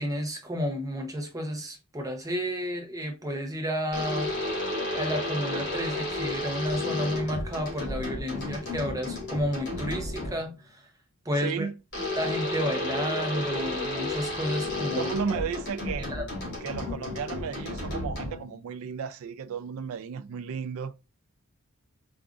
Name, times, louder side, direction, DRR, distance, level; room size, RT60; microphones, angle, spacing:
voice 1, 0.0-4.3 4.9-10.5 11.3-11.7 12.2-15.1 16.0-16.2, equal, 15° right, 0.6 m, -31 dB
sound 1, 3.9-10.5 11.9-18.6, left 2 dB, 50° left, 2.2 m, -32 dB
voice 2, 11.4-11.8 15.0-16.1 16.6-20.9, right 6 dB, 70° right, 0.3 m, -34 dB
4.9 x 2.4 x 2.4 m
head